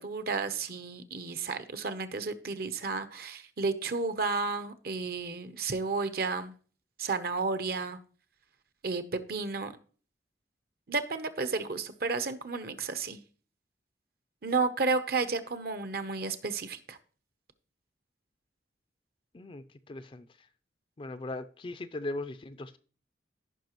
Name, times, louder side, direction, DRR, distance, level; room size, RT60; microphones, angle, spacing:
voice 1, 0.0-6.5 7.0-8.0 8.8-9.7 10.9-13.2 14.4-17.0, right 4 dB, 55° right, 0.8 m, -32 dB
voice 2, 19.3-20.3 21.0-22.8, left 2 dB, 30° left, 0.4 m, -39 dB
14.5 x 5.8 x 3.0 m
head